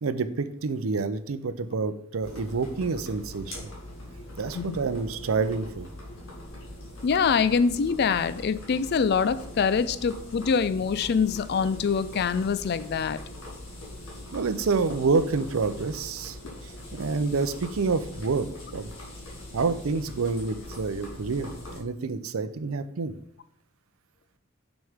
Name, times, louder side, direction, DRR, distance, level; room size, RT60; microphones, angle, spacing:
voice 1, 0.0-3.7 4.4-5.9 14.3-16.4 17.0-18.5 18.7-18.9 19.5-23.1, right 4 dB, 90° right, 12 dB, 0.5 m, -28 dB
sound 1, 2.2-21.8, left 1 dB, 75° left, 2.1 m, -42 dB
voice 2, 7.0-13.2, left 6 dB, 50° left, 15 dB, 0.4 m, -24 dB
6.3 x 6.2 x 3.5 m, 0.72 s
head